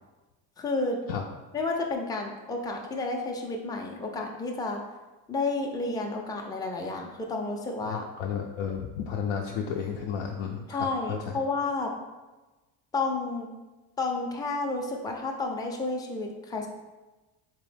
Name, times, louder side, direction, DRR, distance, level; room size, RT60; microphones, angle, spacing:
voice 1, 0.6-1.0 1.5-4.8 5.3-8.0 10.7-11.9 12.9-13.5 14.0-16.7, left 3 dB, 10° left, 1 dB, 0.3 m, -31 dB
voice 2, 7.9-11.4, left 7 dB, 80° left, 0 dB, 0.6 m, -33 dB
3.5 x 3.0 x 3.3 m, 1.1 s
cardioid pair, 95°, 49 cm